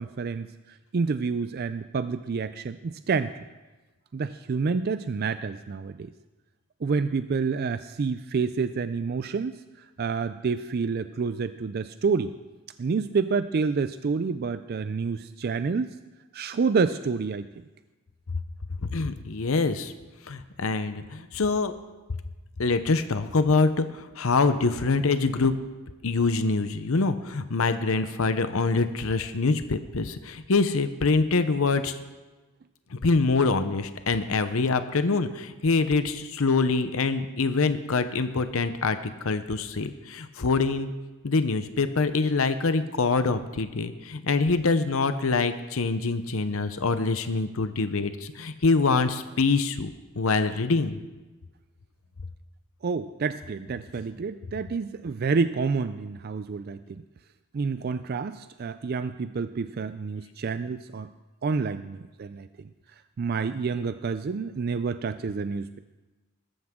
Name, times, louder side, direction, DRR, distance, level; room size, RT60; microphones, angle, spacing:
voice 1, 0.0-3.3 4.1-6.1 6.8-12.3 12.8-16.0 16.3-17.5 52.8-57.0 57.5-61.1 61.4-62.7 63.2-65.8, right 5 dB, 45° right, 11 dB, 0.4 m, -28 dB
voice 2, 18.9-19.9 20.3-21.7 22.6-23.9 24.2-25.5 26.0-32.0 32.9-40.9 41.2-49.9 50.2-51.0, left 3 dB, 65° left, 10 dB, 0.7 m, -25 dB
20.5 x 13.5 x 3.7 m, 1.2 s
head